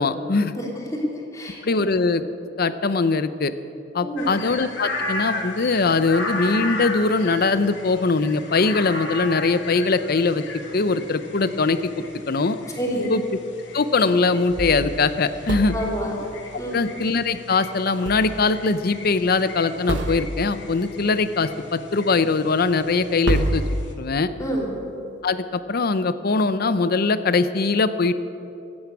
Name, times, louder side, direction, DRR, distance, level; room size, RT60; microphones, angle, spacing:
voice 1, 0.0-0.5 1.6-2.2 2.6-3.5 3.9-12.6 13.1-13.2 13.7-15.7 16.7-23.6 24.0-24.3 25.2-28.1, left 3 dB, 55° left, 13 dB, 0.6 m, -21 dB
voice 2, 0.6-1.9 4.0-4.4 12.7-13.1 15.7-16.1 16.6-16.9 24.4-24.8, equal, 20° left, -2 dB, 3.1 m, -28 dB
sound 1, 4.2-23.9, left 2 dB, 75° left, 1.7 m, -35 dB
sound 2, 14.5-16.1 18.1-18.7 19.0-19.1 19.9-20.7 22.6-22.7 23.3-24.5, right 1 dB, 75° right, 1.1 m, -28 dB
15.0 x 9.5 x 8.6 m, 2.7 s
head